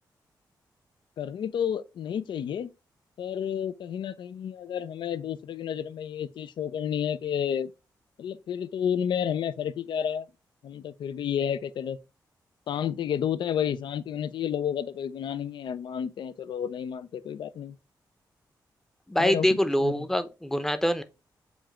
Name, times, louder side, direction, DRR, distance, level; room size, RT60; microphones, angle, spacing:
voice 1, 1.2-2.7 3.2-7.7 8.2-10.3 10.6-12.0 12.7-17.7 19.2-20.0, left 8 dB, 75° left, 0.4 m, -31 dB
voice 2, 19.1-21.0, equal, 5° left, 0.6 m, -25 dB
6.9 x 2.5 x 2.9 m
cardioid pair, 55°, 8 cm